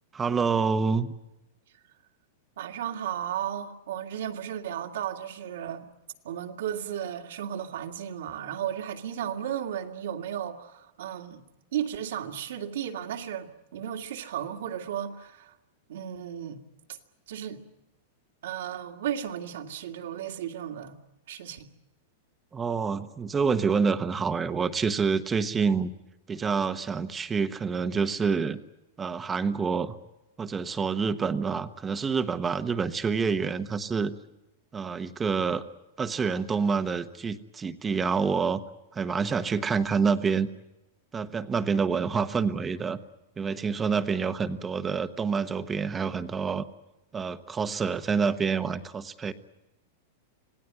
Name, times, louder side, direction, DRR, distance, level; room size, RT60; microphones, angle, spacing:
voice 1, 0.1-1.1 22.5-25.9 26.3-28.6 29.0-29.9 30.4-34.1 34.7-35.6 36.0-38.6 38.9-40.5 41.1-43.0 43.4-46.6 47.1-49.3, right 5 dB, 15° right, 1.1 m, -27 dB
voice 2, 2.6-5.9 6.2-11.4 11.7-15.5 15.9-16.6 16.9-17.0 17.3-17.6 18.4-21.0 21.3-21.7, right 10 dB, 75° right, 2.3 m, -34 dB
26.5 x 18.0 x 9.4 m
supercardioid pair, 155°, 0 cm